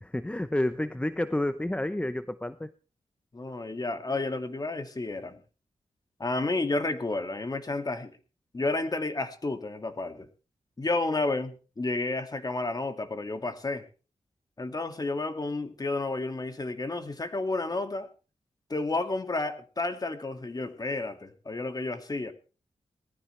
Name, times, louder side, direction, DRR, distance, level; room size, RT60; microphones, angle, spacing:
voice 1, 0.0-2.7, left 1 dB, 10° left, 12 dB, 0.7 m, -30 dB
voice 2, 3.3-5.4 6.2-8.1 8.5-10.3 10.8-13.8 14.6-18.1 18.7-22.3, left 2 dB, 35° left, 7 dB, 2.2 m, -31 dB
19.5 x 14.5 x 3.3 m, 0.36 s
wide cardioid pair, 80°, 11 cm